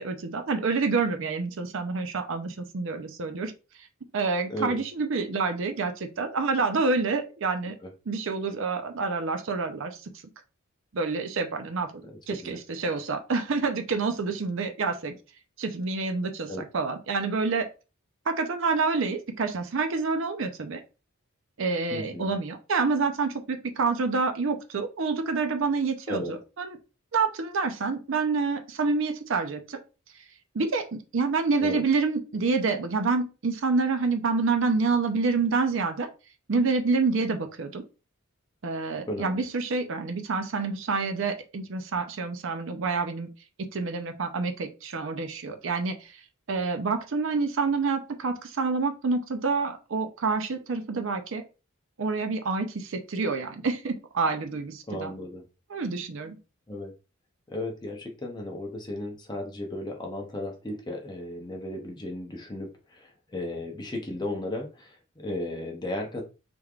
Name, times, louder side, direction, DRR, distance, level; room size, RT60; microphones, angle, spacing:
voice 1, 0.0-3.5 4.1-7.8 8.1-10.0 10.9-11.9 12.3-15.2 15.6-17.7 18.3-20.8 21.6-26.8 27.1-29.8 30.5-36.1 36.5-37.8 38.6-43.3 43.7-46.2 46.5-51.4 52.0-55.1 55.7-56.4, right 4 dB, 60° right, 7 dB, 0.5 m, -27 dB
voice 2, 4.5-4.8 7.8-7.9 12.3-12.6 16.5-16.6 21.9-22.3 26.1-26.3 31.6-31.8 39.1-39.4 54.9-55.4 56.7-56.9 57.5-66.2, left 1 dB, 20° left, 2 dB, 0.7 m, -35 dB
3.4 x 3.2 x 2.4 m, 0.31 s
head